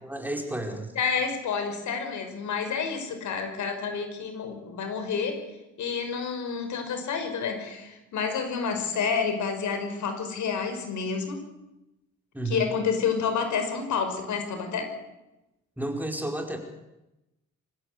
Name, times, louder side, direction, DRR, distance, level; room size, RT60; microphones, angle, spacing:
voice 1, 0.0-0.9 12.3-12.6 15.8-16.6, right 1 dB, 5° right, 3 dB, 4.8 m, -31 dB
voice 2, 1.0-5.4 5.8-11.4 12.5-14.9, left 6 dB, 70° left, 6 dB, 5.7 m, -29 dB
27.0 x 16.0 x 8.2 m, 0.94 s
cardioid pair, 90°, 30 cm